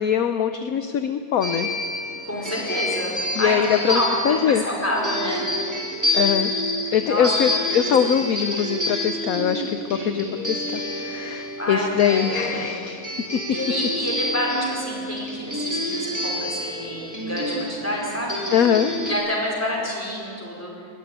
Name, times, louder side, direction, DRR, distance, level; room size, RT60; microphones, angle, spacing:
voice 1, 0.0-1.7 3.4-4.6 6.1-6.5 6.9-13.0 13.3-13.4 18.5-18.9, left 8 dB, 60° left, 9 dB, 1.0 m, -22 dB
sound 1, 1.4-19.1, left 1 dB, 10° right, 3.0 m, -28 dB
voice 2, 2.2-5.4 7.0-7.3 7.5-8.2 11.6-12.8 13.5-18.4 19.0-20.7, equal, 5° left, -2 dB, 4.9 m, -28 dB
20.0 x 15.0 x 9.5 m, 2.3 s
omnidirectional pair, 2.1 m